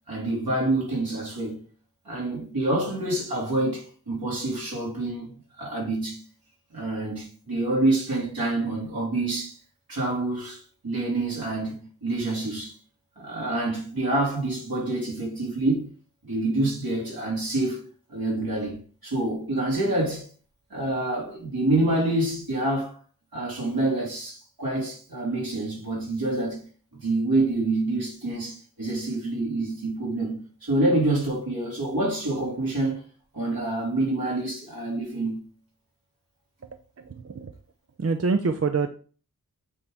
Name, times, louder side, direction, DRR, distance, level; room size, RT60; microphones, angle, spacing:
voice 1, 0.1-1.6 2.1-6.2 6.7-9.6 9.9-12.8 13.2-15.9 16.2-17.8 18.1-20.3 20.7-23.0 23.3-26.7 27.0-33.0 33.3-35.4, right 2 dB, 70° right, 3.5 m, -27 dB
voice 2, 37.0-37.5 38.0-38.9, right 4 dB, 40° right, 0.6 m, -25 dB
8.3 x 4.1 x 3.5 m
wide cardioid pair, 90°, 37 cm